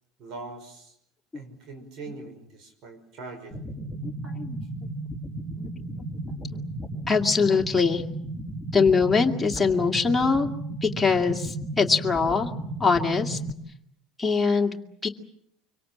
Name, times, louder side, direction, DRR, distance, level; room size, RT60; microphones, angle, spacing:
voice 1, 0.2-1.0 1.3-3.6, right 3 dB, 55° right, 5 dB, 5.6 m, -42 dB
sound 1, 3.5-13.5, right 2 dB, 5° right, 4.4 m, -34 dB
voice 2, 4.0-4.6 5.6-5.7 6.3-6.6 7.1-8.0 8.7-10.5 10.8-12.5 12.8-13.4 14.2-15.1, left 5 dB, 10° left, 1 dB, 2.3 m, -23 dB
25.0 x 24.5 x 7.5 m, 0.75 s
hypercardioid pair, 80°, 0 cm